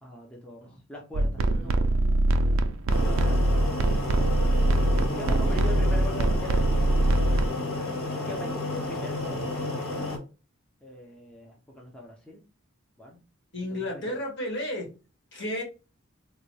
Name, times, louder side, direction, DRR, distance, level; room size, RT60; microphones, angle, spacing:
voice 1, 0.0-2.0 2.9-3.9 5.2-7.1 8.2-9.5 10.8-12.4 13.0-13.2 13.9-14.1, equal, 5° left, -2 dB, 0.6 m, -41 dB
sound 1, 1.1-7.5, right 2 dB, 75° right, 0.4 m, -23 dB
voice 2, 1.4-1.8 4.7-6.0 13.5-14.9 15.3-15.6, equal, 60° left, 0 dB, 1.7 m, -34 dB
sound 2, 2.9-10.2, left 2 dB, 80° left, 1.3 m, -32 dB
3.9 x 2.2 x 3.1 m, 0.31 s
head